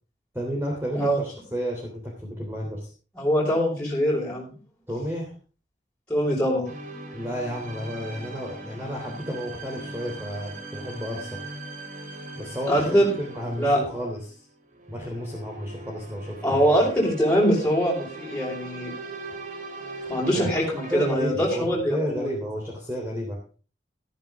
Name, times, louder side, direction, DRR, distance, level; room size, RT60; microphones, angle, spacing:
voice 1, 0.3-2.9 4.9-5.3 7.1-11.4 12.3-14.5 14.9-16.6 20.3-20.5 20.9-23.6, equal, 15° right, -1 dB, 3.3 m, -32 dB
voice 2, 3.2-4.5 6.1-6.7 12.7-13.1 13.5-13.8 16.4-18.9 20.1-22.3, equal, 5° left, -5 dB, 5.3 m, -23 dB
sound 1, 6.6-21.1, right 2 dB, 45° right, 3.2 m, -40 dB
14.0 x 13.5 x 3.6 m, 0.37 s
head